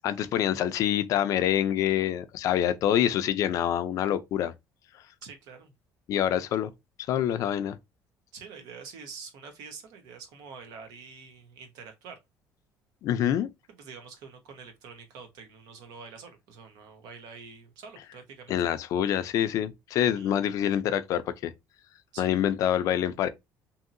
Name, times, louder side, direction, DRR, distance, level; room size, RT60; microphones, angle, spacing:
voice 1, 0.0-4.5 6.1-6.7 7.1-7.8 13.0-13.5 18.5-21.5 22.2-23.3, left 10 dB, 60° left, 0.4 m, -26 dB
voice 2, 5.2-5.7 8.3-12.2 13.7-18.7 20.2-20.3 22.1-22.4, right 5 dB, 80° right, 0.9 m, -46 dB
2.7 x 2.7 x 2.5 m
cardioid pair, 145°, 6 cm